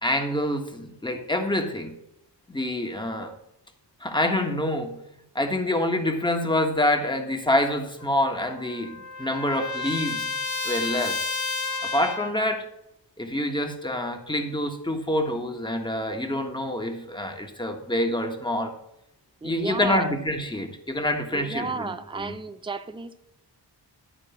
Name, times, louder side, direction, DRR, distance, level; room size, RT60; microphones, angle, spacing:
voice 1, 0.0-1.9 2.5-3.3 4.0-4.9 5.3-10.3 10.6-11.2 11.8-12.7 13.2-18.7 19.4-21.9 22.1-22.3, left 1 dB, 10° left, 1.5 m, -26 dB
Trumpet, 8.0-12.4, left 4 dB, 45° left, 1.0 m, -31 dB
voice 2, 19.4-20.1 21.3-23.2, right 4 dB, 10° right, 0.6 m, -33 dB
12.5 x 4.4 x 7.1 m
wide cardioid pair, 110°, 43 cm